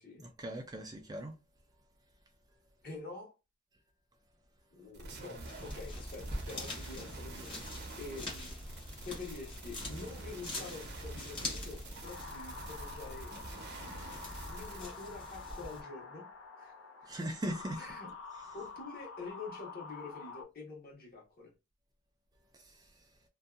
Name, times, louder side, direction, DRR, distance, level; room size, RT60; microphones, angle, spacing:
voice 1, 0.2-1.3 17.1-17.8 22.6-22.7, right 1 dB, 20° right, 0.4 m, -39 dB
voice 2, 2.8-3.3 4.7-8.6 9.0-13.3 14.4-16.3 16.6-16.7 17.0-17.1 17.8-18.1 18.5-21.5, left 3 dB, 50° left, 1.2 m, -47 dB
sound 1, 4.9-14.8, right 2 dB, 55° right, 0.7 m, -46 dB
sound 2, 5.4-15.8, left 2 dB, 25° left, 1.0 m, -45 dB
sound 3, 12.0-20.4, left 4 dB, 65° left, 0.7 m, -48 dB
2.6 x 2.3 x 2.4 m
head